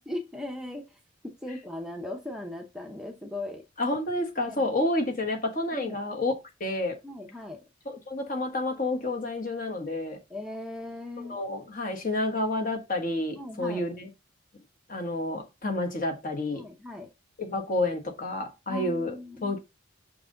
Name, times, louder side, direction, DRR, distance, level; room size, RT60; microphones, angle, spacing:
voice 1, 0.1-3.6 4.4-4.7 5.7-6.0 7.0-7.6 10.3-11.4 13.4-13.9 16.5-17.1 18.7-19.6, left 1 dB, 5° right, 0.7 m, -38 dB
voice 2, 3.8-6.3 6.6-7.0 7.8-10.2 11.3-14.1 14.9-16.6 17.4-19.2 19.4-19.6, left 2 dB, 40° left, 1.4 m, -29 dB
6.4 x 4.7 x 3.8 m
head